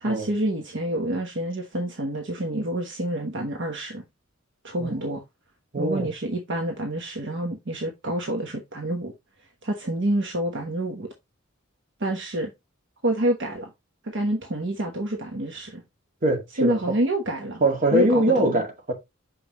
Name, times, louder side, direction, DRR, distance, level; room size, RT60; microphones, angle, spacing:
voice 1, 0.0-4.0 4.6-5.2 5.8-9.1 9.6-11.1 12.0-12.5 13.0-13.7 14.0-15.8 16.6-17.6 17.9-18.6, right 1 dB, 60° right, 1.1 m, -27 dB
voice 2, 4.8-5.2 5.7-6.1 16.2-16.8 17.6-18.9, right 1 dB, 45° right, 2.1 m, -23 dB
6.5 x 5.5 x 3.0 m
head